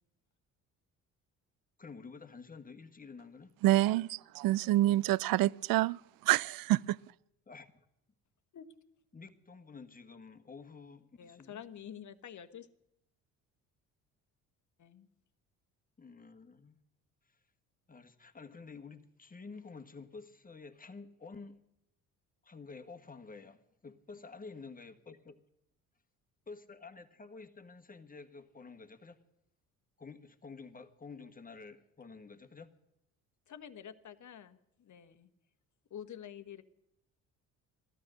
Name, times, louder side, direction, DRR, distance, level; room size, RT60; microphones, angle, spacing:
voice 1, 1.8-3.5 4.7-5.1 7.5-7.8 9.1-11.6 16.0-16.8 17.3-17.4 17.9-21.6 22.4-25.4 26.5-29.2 30.0-32.7, left 4 dB, 20° left, 1.6 m, -50 dB
voice 2, 3.6-7.0, right 16 dB, 55° right, 0.5 m, -27 dB
voice 3, 11.2-12.7 14.8-15.1 33.5-35.3 35.9-36.6, left 9 dB, 45° left, 1.2 m, -48 dB
16.5 x 13.0 x 6.5 m
hypercardioid pair, 55°, 42 cm